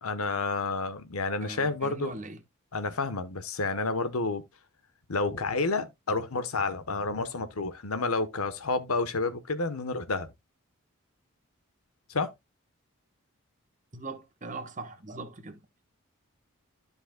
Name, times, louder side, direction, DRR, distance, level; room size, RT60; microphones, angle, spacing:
voice 1, 0.0-2.2 2.7-4.4 5.1-10.3 12.1-12.3, left 3 dB, 85° left, 1.0 m, -30 dB
voice 2, 1.4-2.4 13.9-15.8, right 3 dB, 35° right, 1.2 m, -41 dB
13.0 x 5.4 x 2.2 m
head